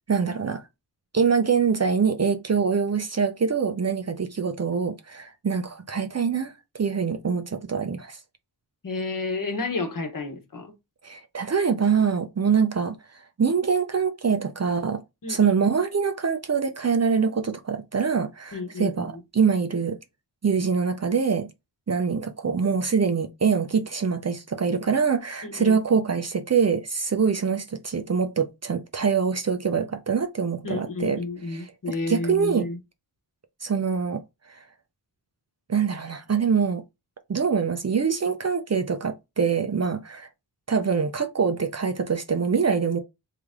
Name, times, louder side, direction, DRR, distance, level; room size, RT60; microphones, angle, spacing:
voice 1, 0.1-0.6 1.1-6.5 6.8-8.2 11.0-15.0 15.3-20.0 20.4-21.5 21.9-31.2 31.5-32.7 33.6-34.2 34.5-34.6 35.7-36.8 37.3-40.3 40.7-43.0, right 6 dB, 40° right, 0.5 m, -24 dB
voice 2, 8.8-10.7 15.2-15.5 18.5-19.2 25.4-25.8 30.6-32.8, left 3 dB, 50° left, 1.1 m, -31 dB
3.7 x 3.3 x 3.5 m
wide cardioid pair, 130°, 43 cm